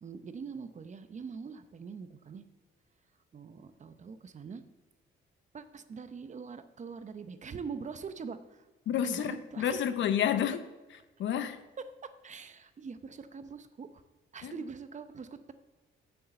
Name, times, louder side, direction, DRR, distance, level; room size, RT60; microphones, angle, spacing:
voice 1, 0.0-2.4 3.3-4.6 5.5-8.7 9.0-9.8 12.0-14.0 14.3-15.5, right 5 dB, 35° right, 11 dB, 0.8 m, -43 dB
voice 2, 8.9-10.6 11.2-11.6 14.4-14.6, left 9 dB, 70° left, 12 dB, 0.7 m, -30 dB
7.0 x 6.5 x 7.6 m, 1.2 s
cardioid pair, 90°, 20 cm